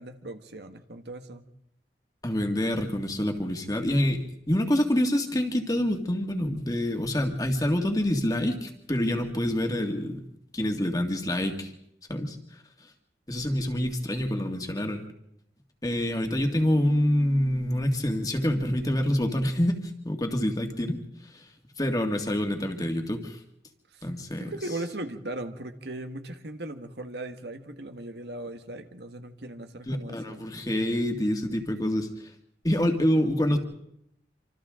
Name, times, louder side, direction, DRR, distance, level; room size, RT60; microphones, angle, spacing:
voice 1, 0.0-1.4 23.9-24.1 24.4-30.5, right 1 dB, 75° right, 7 dB, 1.7 m, -38 dB
voice 2, 2.2-10.3 10.5-11.7 12.1-12.6 13.3-15.0 15.8-21.5 21.8-23.4 24.0-24.5 29.9-32.3 32.6-33.6, left 1 dB, 20° left, 4 dB, 2.0 m, -27 dB
26.5 x 26.0 x 3.8 m, 0.78 s
head